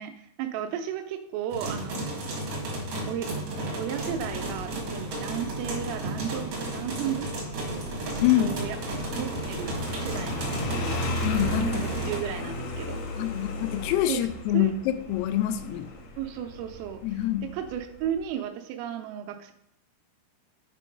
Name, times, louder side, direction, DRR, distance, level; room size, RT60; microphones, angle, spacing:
voice 1, 0.0-2.2 3.0-3.3 3.8-8.8 9.1-11.0 11.6-13.0 14.1-14.3 14.5-14.7 16.2-19.5, right 9 dB, 80° right, 6 dB, 3.2 m, -34 dB
sound 1, 1.5-12.2, right 1 dB, 65° right, 1.6 m, -33 dB
Motorcycle, 3.9-18.2, left 1 dB, 75° left, 2.4 m, -36 dB
voice 2, 8.2-8.6 11.2-11.8 13.2-15.9 17.0-17.5, left 13 dB, 90° left, 10 dB, 3.3 m, -26 dB
8.3 x 4.7 x 5.2 m, 0.78 s
omnidirectional pair, 5.9 m